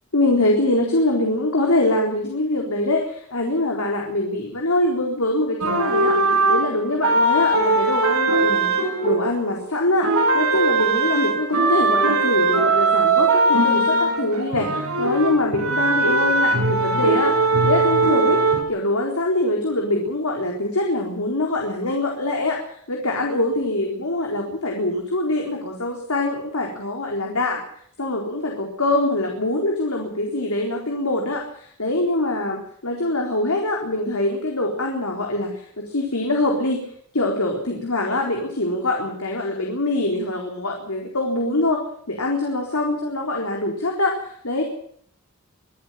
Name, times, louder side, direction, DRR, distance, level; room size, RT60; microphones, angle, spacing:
voice 1, 0.1-8.7 9.0-17.3 17.6-22.6 22.9-27.6 28.0-31.4 31.8-36.8 37.1-41.8 42.1-44.6, left 2 dB, 75° left, 1 dB, 4.2 m, -23 dB
sound 1, 5.6-9.7 10.0-18.6, right 2 dB, 80° right, 4.7 m, -20 dB
24.5 x 12.0 x 9.1 m, 0.62 s
head